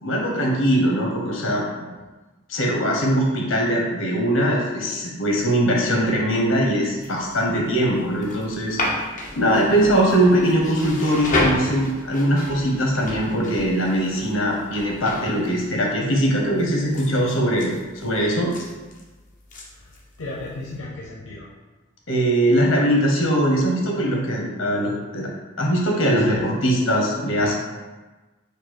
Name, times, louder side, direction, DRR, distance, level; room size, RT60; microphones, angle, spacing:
voice 1, 0.0-1.6 2.5-9.1 9.3-18.5 22.1-25.3 25.6-27.5, equal, 65° left, -1 dB, 1.1 m, -21 dB
sound 1, 7.0-20.8, left 2 dB, 40° left, 0.8 m, -33 dB
voice 2, 19.7-21.5 26.2-26.4 27.4-27.5, left 2 dB, 85° left, -4 dB, 0.7 m, -36 dB
5.2 x 2.4 x 4.3 m, 1.2 s
head